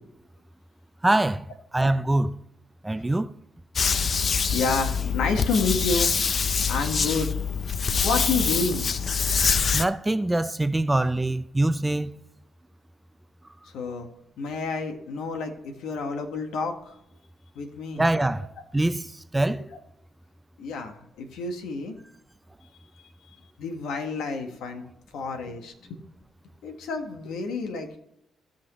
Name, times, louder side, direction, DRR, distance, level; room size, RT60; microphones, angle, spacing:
voice 1, 1.0-1.5 1.7-2.4 2.8-3.3 9.7-12.1 18.0-18.5 18.7-19.7, right 2 dB, 15° right, 0.6 m, -24 dB
sound 1, 3.8-9.9, left 6 dB, 50° left, 0.6 m, -25 dB
voice 2, 4.5-6.1 6.7-7.3 8.0-8.9 13.7-14.1 14.4-16.9 17.5-18.0 20.6-22.0 23.6-24.8 25.1-26.0 26.6-28.0, left 4 dB, 80° left, 1.6 m, -29 dB
16.5 x 5.8 x 3.1 m
cardioid pair, 70°, 0 cm